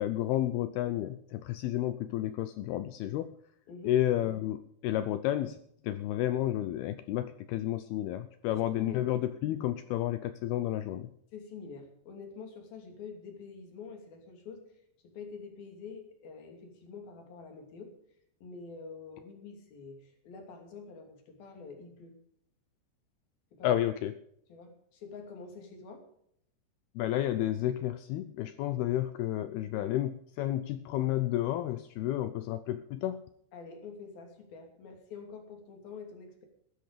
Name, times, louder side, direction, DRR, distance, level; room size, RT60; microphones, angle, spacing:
voice 1, 0.0-3.3 3.8-5.6 5.8-11.1 23.6-24.1 27.0-33.2, left 13 dB, 80° left, 12 dB, 2.3 m, -31 dB
voice 2, 8.5-9.1 11.3-17.9 18.4-22.1 23.5-23.8 24.5-26.0 33.5-36.5, left 5 dB, 55° left, 3 dB, 4.4 m, -47 dB
16.0 x 12.5 x 5.1 m, 0.70 s
omnidirectional pair, 5.2 m